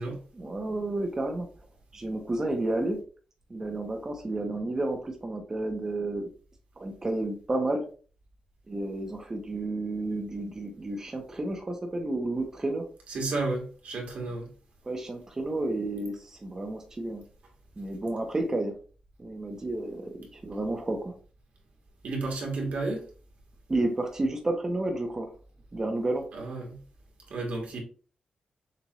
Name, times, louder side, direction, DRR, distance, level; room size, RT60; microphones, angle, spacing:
voice 1, 0.3-1.5 1.9-3.0 3.5-6.3 6.8-7.8 8.7-12.8 14.8-17.2 17.8-18.8 19.2-21.1 23.7-25.3 25.7-26.2, right 2 dB, 25° right, 0.8 m, -31 dB
voice 2, 13.1-14.5 22.0-23.0 26.3-26.8 27.3-27.8, right 3 dB, 75° right, 1.8 m, -32 dB
6.8 x 2.5 x 3.1 m
wide cardioid pair, 140°, 2 cm